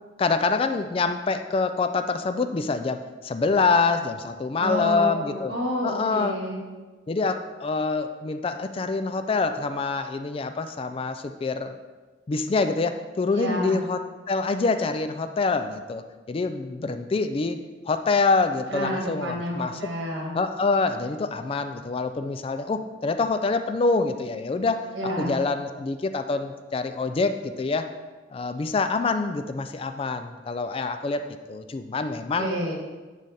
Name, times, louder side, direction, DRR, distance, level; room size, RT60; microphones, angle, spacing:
voice 1, 0.2-5.5 5.8-6.4 7.1-11.8 12.3-14.0 14.3-17.6 17.9-19.9 20.3-24.8 25.2-27.9 28.3-31.2 31.5-32.5, left 4 dB, 30° left, 9 dB, 0.3 m, -26 dB
voice 2, 4.6-6.6 13.3-13.8 18.7-20.4 24.9-25.4 32.4-32.7, equal, 80° right, 0 dB, 1.6 m, -29 dB
9.9 x 3.3 x 4.1 m, 1.3 s
head